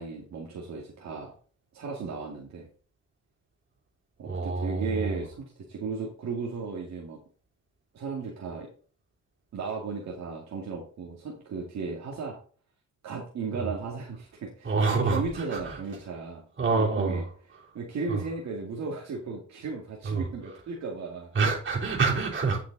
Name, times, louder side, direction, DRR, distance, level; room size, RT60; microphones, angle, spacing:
voice 1, 0.0-1.3 1.7-2.7 4.2-7.2 7.9-8.7 9.5-12.4 13.0-16.4 16.7-17.2 17.7-21.3, right 4 dB, 65° right, 2.3 m, -35 dB
voice 2, 4.3-5.2 13.5-13.7 14.6-15.8 16.6-17.2 18.1-18.2 20.0-20.2 21.3-22.6, right 4 dB, 40° right, 3.8 m, -27 dB
10.0 x 5.8 x 4.1 m
cardioid pair, 90°, 30 cm